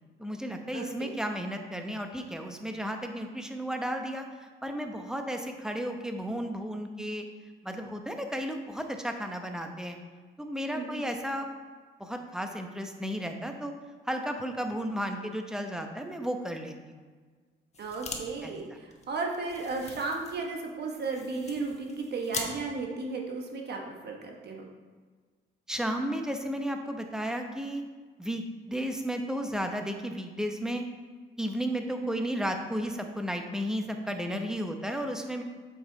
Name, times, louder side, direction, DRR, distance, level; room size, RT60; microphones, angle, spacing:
voice 1, 0.2-7.3 7.6-10.0 10.4-11.5 12.0-13.7 14.1-16.9 18.1-18.5 25.7-27.8 28.2-28.4 28.7-30.8 31.4-35.4, equal, 5° right, 4 dB, 0.9 m, -33 dB
voice 2, 0.7-1.1 10.7-11.0 17.8-24.6 32.0-32.3, right 3 dB, 55° right, 1 dB, 1.2 m, -35 dB
sound 1, 17.7-18.2 18.5-18.6 18.9-22.5, left 4 dB, 35° left, 1.2 m, -41 dB
7.8 x 5.4 x 3.9 m, 1.5 s
cardioid pair, 90°, 20 cm